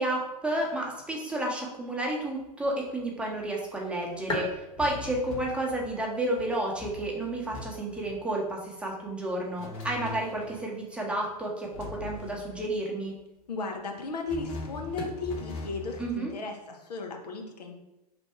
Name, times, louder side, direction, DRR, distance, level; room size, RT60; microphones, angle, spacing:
voice 1, 0.0-13.1 16.0-16.3, right 1 dB, 5° right, -2 dB, 0.9 m, -31 dB
sound 1, 1.8-16.0, left 1 dB, 25° left, 1.2 m, -45 dB
sound 2, 4.8-6.0 6.4-6.5 6.8-7.6 7.9-8.2 9.6-10.7 11.7-12.7 14.3-16.2, left 3 dB, 60° left, 1.4 m, -41 dB
voice 2, 13.5-17.8, left 3 dB, 75° left, 2 dB, 0.8 m, -35 dB
3.4 x 2.6 x 4.4 m, 0.95 s
hypercardioid pair, 105°, 20 cm